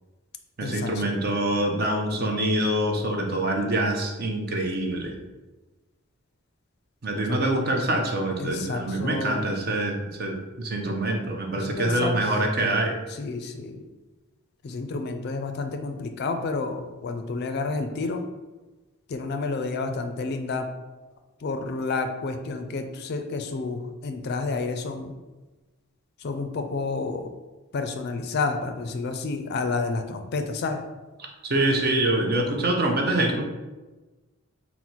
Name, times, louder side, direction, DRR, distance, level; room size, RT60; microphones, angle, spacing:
voice 1, 0.6-5.2 7.0-13.0 31.2-33.4, right 1 dB, 45° right, 2 dB, 0.6 m, -25 dB
voice 2, 8.4-9.6 11.6-12.1 13.2-13.8 14.6-18.2 19.1-20.6 21.4-25.1 26.2-27.3 27.7-30.8, left 3 dB, 50° left, 6 dB, 0.4 m, -30 dB
4.0 x 2.0 x 4.4 m, 1.2 s
head